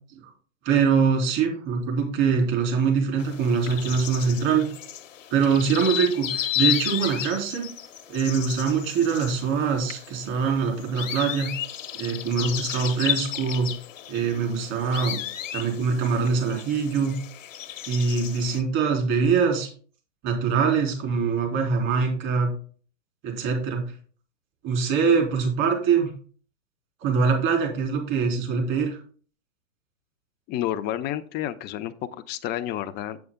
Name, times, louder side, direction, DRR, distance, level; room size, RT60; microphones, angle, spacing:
voice 1, 0.6-4.7 5.3-7.7 8.1-11.5 12.0-13.7 14.1-15.2 15.5-17.2 17.9-19.7 20.2-22.5 23.2-23.8 24.6-26.1 27.0-29.0, right 6 dB, 40° right, 1 dB, 3.5 m, -23 dB
sound 1, 3.2-18.6, left 11 dB, 70° left, 1.0 m, -33 dB
voice 2, 30.5-33.3, left 12 dB, 25° left, 10 dB, 0.6 m, -30 dB
7.7 x 7.1 x 3.7 m, 0.43 s
hypercardioid pair, 115°, 40 cm